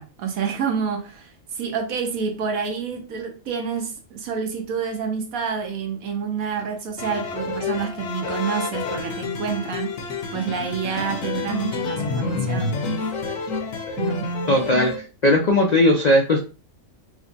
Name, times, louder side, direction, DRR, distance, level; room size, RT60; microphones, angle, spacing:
voice 1, 0.0-9.9 10.3-12.8 14.0-14.3, right 6 dB, 75° right, 4 dB, 1.2 m, -28 dB
sound 1, 7.0-15.0, left 4 dB, 70° left, 1.0 m, -28 dB
voice 2, 14.5-16.4, left 1 dB, 85° left, 0 dB, 0.3 m, -18 dB
4.8 x 2.1 x 2.7 m, 0.34 s
omnidirectional pair, 1.5 m